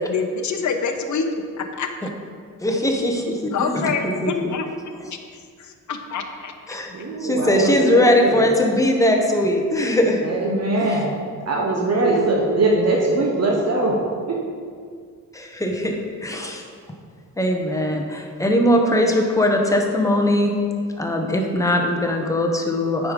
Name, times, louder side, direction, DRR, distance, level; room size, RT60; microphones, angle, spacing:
voice 1, 0.0-1.3 1.8-1.9 2.7-2.8 3.5-4.7 5.6-6.5, left 5 dB, 55° left, 5 dB, 0.8 m, -26 dB
voice 2, 2.6-3.3 3.6-4.5 6.7-6.9 7.2-10.3 10.8-10.9 11.8-11.9 15.3-16.6 17.4-20.5 21.0-23.1, left 1 dB, 10° left, 1 dB, 1.0 m, -20 dB
voice 3, 6.9-8.3 10.2-11.2 11.5-14.0 14.3-14.4, right 2 dB, 50° right, -2 dB, 1.0 m, -21 dB
8.7 x 5.0 x 5.1 m, 2.1 s
wide cardioid pair, 115°, 34 cm